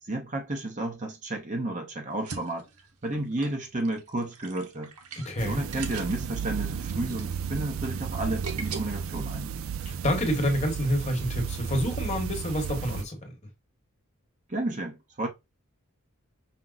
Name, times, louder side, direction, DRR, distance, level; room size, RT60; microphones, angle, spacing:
voice 1, 0.0-2.7 3.0-4.9 5.4-9.5 14.5-15.3, right 2 dB, 35° right, 0.7 m, -32 dB
sound 1, 2.1-8.8, right 5 dB, 85° right, 0.9 m, -42 dB
voice 2, 5.1-5.6 9.8-13.4, equal, 30° left, 1.1 m, -28 dB
sound 2, 5.4-13.0, right 6 dB, 65° right, 0.3 m, -33 dB
5.8 x 2.1 x 3.8 m
head